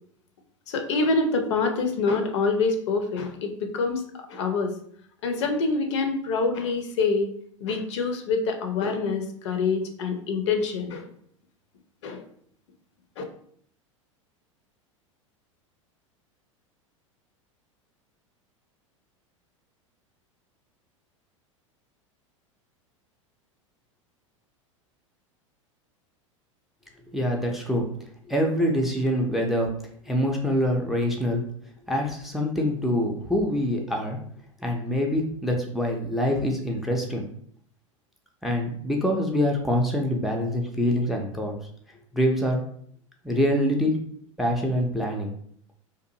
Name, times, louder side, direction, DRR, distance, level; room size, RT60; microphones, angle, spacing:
voice 1, 0.7-4.7 5.2-7.3 7.6-11.1 12.0-12.2 13.2-13.3, left 4 dB, 60° left, 5 dB, 0.5 m, -26 dB
voice 2, 27.1-27.9 28.3-29.7 30.1-31.4 31.9-34.2 34.6-37.2 38.4-41.5 42.1-42.6 43.2-43.9 44.4-45.3, equal, ahead, 1 dB, 0.4 m, -25 dB
2.6 x 2.4 x 2.7 m, 0.62 s
figure-of-eight pair, 85°, 17 cm